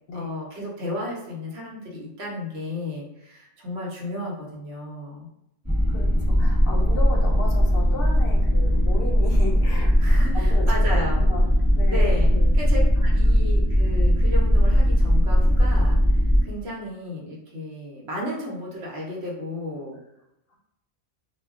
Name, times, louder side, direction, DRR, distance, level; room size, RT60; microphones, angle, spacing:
voice 1, 0.1-5.3 10.0-11.2 11.9-20.0, left 1 dB, 70° right, -3 dB, 1.0 m, -33 dB
sound 1, 5.6-16.4, equal, 15° right, 1.0 m, -19 dB
voice 2, 5.9-9.9 10.3-10.6 10.9-12.5 13.0-13.3, left 2 dB, 65° left, 0 dB, 0.7 m, -35 dB
2.2 x 2.1 x 3.5 m, 0.85 s
omnidirectional pair, 1.1 m